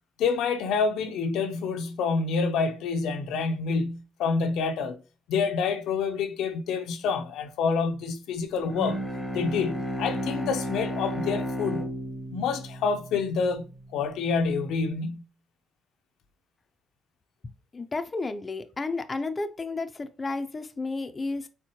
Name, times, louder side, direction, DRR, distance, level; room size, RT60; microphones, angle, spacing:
voice 1, 0.2-5.0 5.3-9.0 9.3-11.9 12.3-13.7 13.9-15.2, left 5 dB, 90° left, 0.6 m, -27 dB
Bowed string instrument, 8.6-13.9, equal, 5° right, 0.9 m, -33 dB
voice 2, 17.7-21.5, left 3 dB, 25° left, 0.5 m, -32 dB
4.4 x 3.5 x 2.9 m
cardioid pair, 120°, 0 cm